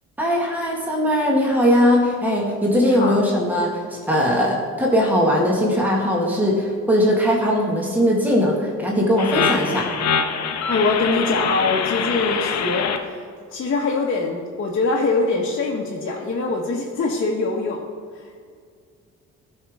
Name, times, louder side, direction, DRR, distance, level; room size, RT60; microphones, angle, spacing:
voice 1, 0.2-9.9, equal, 5° right, -3 dB, 1.8 m, -20 dB
voice 2, 2.8-3.2 10.7-13.2 13.5-17.8 18.1-18.4, left 3 dB, 45° left, -4 dB, 1.2 m, -23 dB
sound 1, 9.2-13.0, left 6 dB, 60° left, 0.8 m, -24 dB
13.0 x 5.5 x 3.6 m, 2.1 s
cardioid pair, 90°, 30 cm